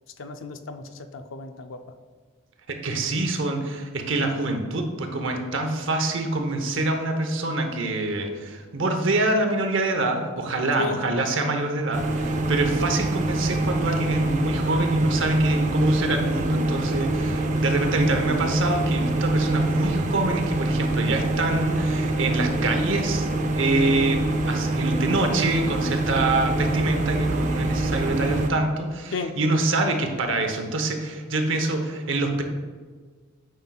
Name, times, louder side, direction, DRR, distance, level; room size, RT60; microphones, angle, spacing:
voice 1, 0.2-1.8 10.8-11.0 29.1-29.4, left 4 dB, 65° left, 8 dB, 0.5 m, -33 dB
voice 2, 2.7-23.3 23.6-32.4, right 2 dB, 65° right, 5 dB, 0.8 m, -25 dB
sound 1, 11.9-28.5, right 2 dB, 35° right, 0.5 m, -25 dB
9.2 x 5.5 x 2.3 m, 1.5 s
head